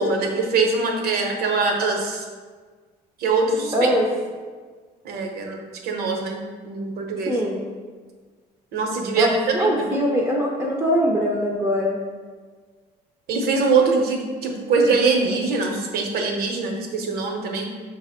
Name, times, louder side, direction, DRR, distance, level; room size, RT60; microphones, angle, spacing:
voice 1, 0.0-2.2 3.2-3.9 5.0-7.4 8.7-10.0 13.3-17.7, right 4 dB, 65° right, 2 dB, 0.8 m, -23 dB
voice 2, 3.7-4.0 7.3-7.6 9.2-12.0, equal, 10° right, -2 dB, 0.5 m, -22 dB
5.6 x 2.0 x 4.2 m, 1.5 s
cardioid pair, 110°, 17 cm